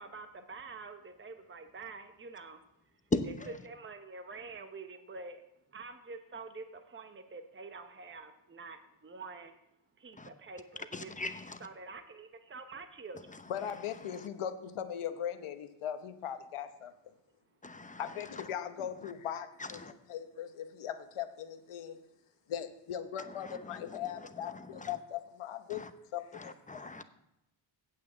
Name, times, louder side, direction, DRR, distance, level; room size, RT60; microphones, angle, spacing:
voice 1, 0.0-2.6 3.6-5.4 5.7-9.5 10.0-11.1 11.6-13.4, right 4 dB, 25° right, 0.9 m, -47 dB
voice 2, 3.1-3.6 10.1-10.3 10.9-11.7 13.1-14.3 17.6-18.5 19.0-19.1 19.6-19.9 23.2-25.0 25.7-25.9 26.3-27.0, left 2 dB, 15° left, 0.8 m, -40 dB
voice 3, 13.5-16.9 18.0-19.8 20.1-22.0 22.5-25.9 26.1-26.9, left 9 dB, 85° left, 1.0 m, -39 dB
8.6 x 5.5 x 7.7 m
cardioid pair, 75°, 49 cm